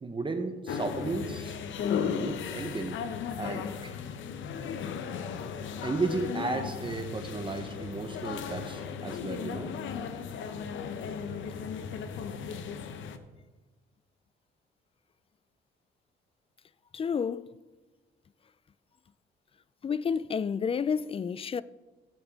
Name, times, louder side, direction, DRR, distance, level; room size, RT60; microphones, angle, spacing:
voice 1, 0.0-1.6 2.2-3.0 3.4-3.9 5.8-9.7, right 3 dB, 25° right, 1.0 m, -34 dB
sound 1, 0.7-13.2, left 7 dB, 75° left, 0.8 m, -36 dB
voice 2, 16.9-17.5 19.8-21.6, left 6 dB, 30° left, 0.4 m, -30 dB
15.0 x 8.8 x 3.6 m
cardioid pair, 90°, 20 cm